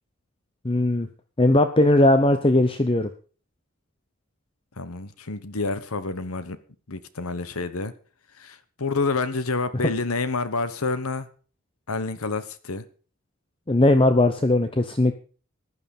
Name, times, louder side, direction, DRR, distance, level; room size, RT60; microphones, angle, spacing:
voice 1, 0.6-1.1 1.4-3.1 13.7-15.1, left 1 dB, 25° left, 0.8 m, -19 dB
voice 2, 4.8-6.6 6.9-7.9 8.4-11.3 11.9-12.9, left 3 dB, 80° left, 1.2 m, -28 dB
14.5 x 11.0 x 5.5 m
head